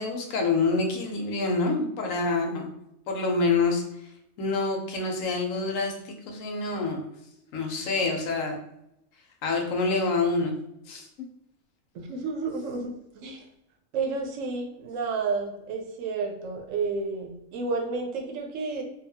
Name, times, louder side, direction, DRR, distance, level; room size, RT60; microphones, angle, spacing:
voice 1, 0.0-2.7 3.1-3.8 4.4-7.0 7.5-8.6 9.4-10.5 10.9-11.1, left 3 dB, 80° left, 2 dB, 1.0 m, -27 dB
voice 2, 11.9-13.4 13.9-18.8, right 4 dB, 75° right, 3 dB, 0.9 m, -31 dB
2.7 x 2.3 x 2.7 m, 0.81 s
omnidirectional pair, 1.4 m